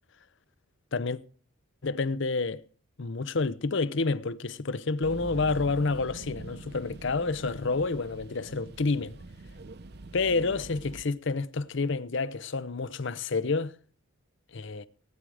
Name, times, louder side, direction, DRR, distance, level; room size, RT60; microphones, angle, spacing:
voice 1, 1.8-2.6 3.0-9.2 10.1-13.7 14.5-14.9, left 3 dB, 60° left, 0.7 m, -29 dB
sound 1, 5.0-11.0, right 2 dB, 50° right, 0.7 m, -44 dB
18.5 x 9.3 x 4.9 m
head